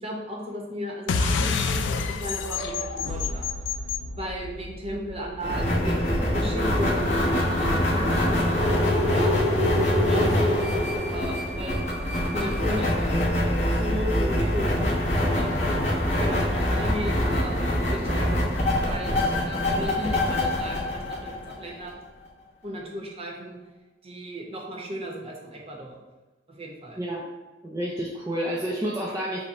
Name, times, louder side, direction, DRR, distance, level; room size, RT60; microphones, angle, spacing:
voice 1, 0.0-3.5 4.2-8.8 9.1-9.4 9.9-11.9 12.3-13.2 13.6-14.9 15.3-15.7 16.2-18.4 18.9-22.0 22.6-23.6 24.0-26.0 26.5-27.0, equal, 35° right, -1 dB, 0.8 m, -35 dB
sound 1, 1.1-6.0, left 4 dB, 90° left, 0.3 m, -29 dB
sound 2, 5.4-21.9, left 1 dB, 40° left, 1.0 m, -24 dB
voice 2, 27.6-29.4, right 1 dB, 15° right, -4 dB, 0.4 m, -29 dB
5.4 x 2.1 x 4.1 m, 1.2 s
head